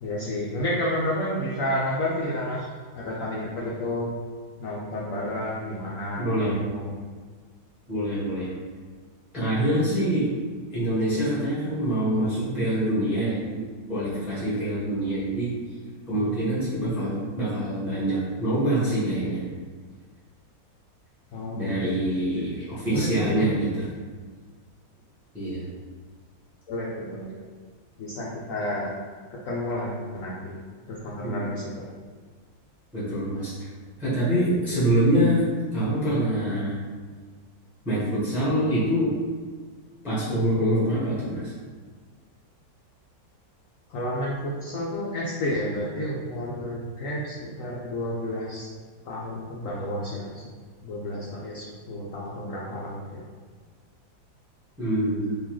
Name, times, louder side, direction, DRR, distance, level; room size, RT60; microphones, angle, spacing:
voice 1, 0.0-2.7 2.9-4.1 4.6-6.9 21.3-21.8 22.8-23.5 26.7-27.3 28.0-28.9 29.3-30.5 30.9-31.9 43.9-48.6 49.0-50.4 50.8-53.2, left 1 dB, 70° left, -5 dB, 0.7 m, -31 dB
voice 2, 6.2-6.6 7.9-8.5 9.3-10.3 10.7-13.4 13.9-15.5 16.1-19.4 21.5-23.9 25.3-25.6 31.2-31.5 32.9-33.7 34.0-35.4 35.7-36.8 37.8-39.1 40.0-41.5 54.8-55.4, right 1 dB, ahead, -10 dB, 1.0 m, -25 dB
3.8 x 2.9 x 3.1 m, 1.5 s
omnidirectional pair, 2.0 m